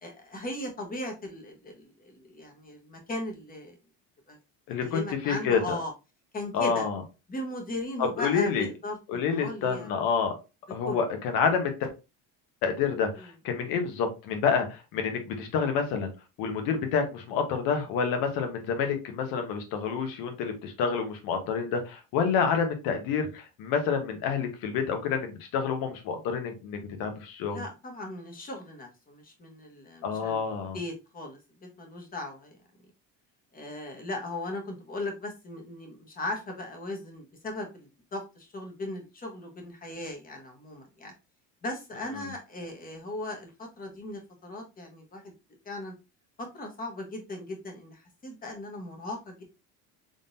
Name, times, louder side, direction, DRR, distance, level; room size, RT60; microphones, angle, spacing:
voice 1, 0.0-3.8 4.3-4.4 4.8-5.9 6.3-6.8 7.3-9.9 10.8-11.0 13.2-13.3 27.5-32.6 33.5-41.1 41.6-45.3 45.6-45.9 46.4-49.4, left 1 dB, 25° left, 3 dB, 1.1 m, -38 dB
voice 2, 4.7-5.6 6.5-7.0 8.0-8.7 9.1-10.3 10.7-11.9 12.6-16.1 16.4-27.6 30.0-30.8, left 6 dB, 70° left, 6 dB, 1.2 m, -28 dB
3.8 x 3.7 x 2.6 m, 0.27 s
cardioid pair, 145°, 37 cm